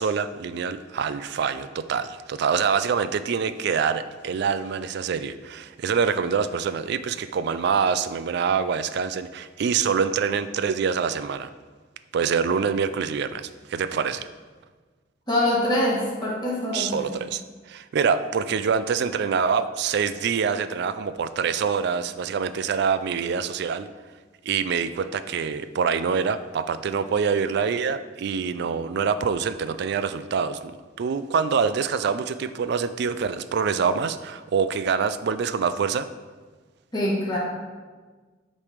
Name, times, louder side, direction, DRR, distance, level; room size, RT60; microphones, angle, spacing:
voice 1, 0.0-11.5 12.1-14.3 16.7-17.4 17.7-23.9 24.4-36.1, right 6 dB, 60° right, 13 dB, 0.3 m, -25 dB
voice 2, 15.3-17.1 36.9-37.4, left 1 dB, 20° left, -6 dB, 1.6 m, -24 dB
8.5 x 3.2 x 5.1 m, 1.4 s
head